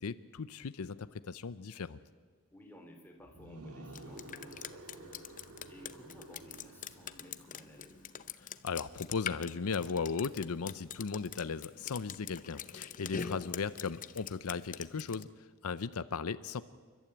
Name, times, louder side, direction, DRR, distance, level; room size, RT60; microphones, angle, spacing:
voice 1, 0.0-1.0 1.2-2.0 8.4-16.6, left 5 dB, 75° left, 14 dB, 0.6 m, -37 dB
voice 2, 2.5-5.3 5.7-8.1, equal, 10° left, 2 dB, 3.3 m, -55 dB
sound 1, 3.2-8.3, right 1 dB, 85° right, 2.0 m, -52 dB
Drip, 3.9-15.2, left 8 dB, 35° left, 0.7 m, -44 dB
28.5 x 12.5 x 8.6 m, 1.5 s
head